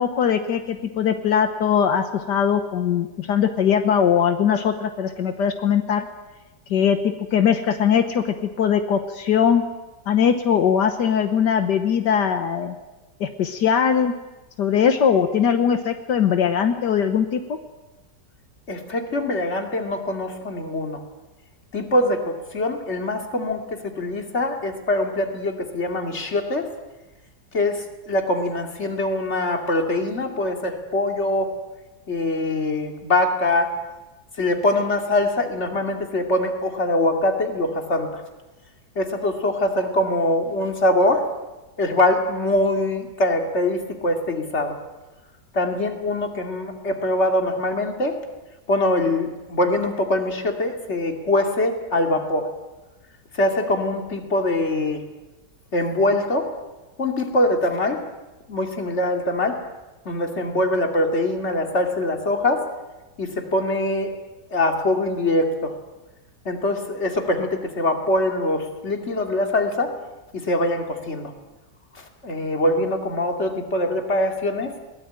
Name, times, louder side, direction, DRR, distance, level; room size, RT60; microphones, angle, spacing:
voice 1, 0.0-6.1 6.7-9.6 10.1-12.8 13.2-14.1 14.6-17.4, left 8 dB, 80° left, 8 dB, 1.7 m, -20 dB
voice 2, 18.7-21.0 21.7-26.7 27.5-31.5 32.1-33.7 34.4-38.2 38.9-41.3 41.8-44.8 45.5-48.2 48.7-52.5 53.3-55.0 55.7-56.5 57.0-58.0 58.5-59.6 60.0-62.6 63.2-64.1 64.5-65.8 66.4-69.9 70.3-71.3 71.9-74.7, left 1 dB, 40° left, 4 dB, 2.8 m, -23 dB
22.0 x 19.0 x 9.0 m, 1.1 s
omnidirectional pair, 1.8 m